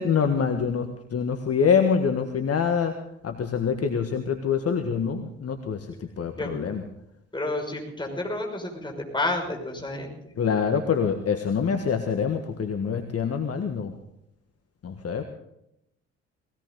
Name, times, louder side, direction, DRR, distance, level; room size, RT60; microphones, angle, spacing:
voice 1, 0.0-2.9 3.2-6.8 10.4-13.9 14.8-15.2, left 6 dB, 45° left, 6 dB, 1.7 m, -25 dB
voice 2, 7.3-10.3, left 2 dB, 15° left, 1 dB, 6.1 m, -30 dB
20.0 x 17.5 x 4.0 m, 0.81 s
hypercardioid pair, 50°, 35 cm